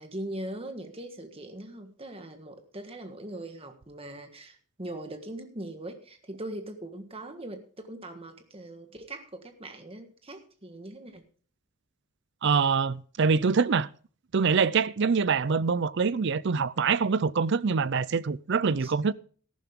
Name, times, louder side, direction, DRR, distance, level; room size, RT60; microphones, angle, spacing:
voice 1, 0.0-11.2 18.8-18.9, right 1 dB, 25° right, 1.5 m, -41 dB
voice 2, 12.4-13.9 14.3-19.1, right 5 dB, 55° right, 0.5 m, -25 dB
14.0 x 11.5 x 3.7 m
head